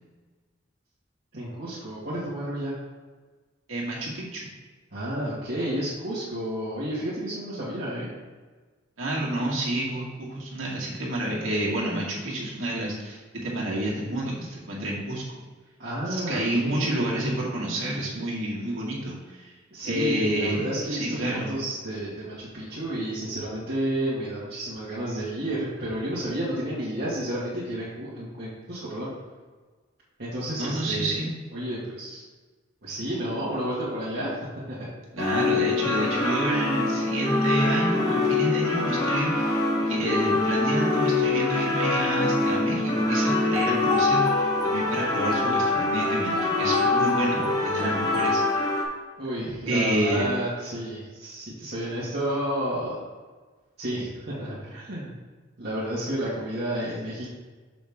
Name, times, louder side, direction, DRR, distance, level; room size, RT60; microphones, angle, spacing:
voice 1, 1.3-2.7 4.9-8.1 15.8-17.4 19.7-29.1 30.2-31.2 31.5-32.2 32.8-34.9 49.2-53.0 53.8-55.1 55.6-57.3, right 1 dB, 55° right, -10 dB, 2.0 m, -31 dB
voice 2, 3.7-4.5 9.0-15.4 16.1-19.5 19.8-21.5 30.6-31.3 35.1-48.4 49.7-50.3, right 1 dB, 90° right, -5 dB, 2.1 m, -29 dB
sound 1, 35.2-48.8, left 2 dB, 20° left, 1.1 m, -24 dB
6.4 x 6.1 x 3.6 m, 1.4 s
head